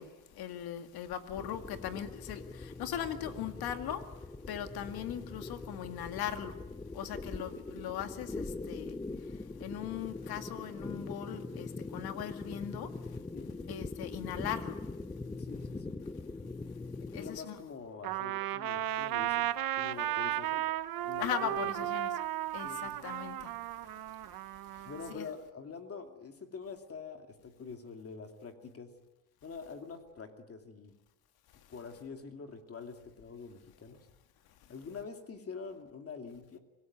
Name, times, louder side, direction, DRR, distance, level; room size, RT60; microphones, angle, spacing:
voice 1, 0.0-6.6 6.9-13.3 13.7-15.0 17.1-17.6 21.2-22.1 22.5-25.3 31.5-31.7 34.6-34.7, left 10 dB, 70° left, 2.1 m, -40 dB
sound 1, 1.3-17.4, left 3 dB, 10° left, 0.7 m, -42 dB
voice 2, 15.4-16.0 17.1-20.7 21.0-21.6 22.6-23.1 24.8-28.9 29.4-31.0 31.7-34.0 34.7-36.6, left 5 dB, 35° left, 2.6 m, -45 dB
Trumpet, 18.0-25.1, right 14 dB, 60° right, 1.0 m, -35 dB
25.5 x 17.5 x 9.6 m
cardioid pair, 110°, 39 cm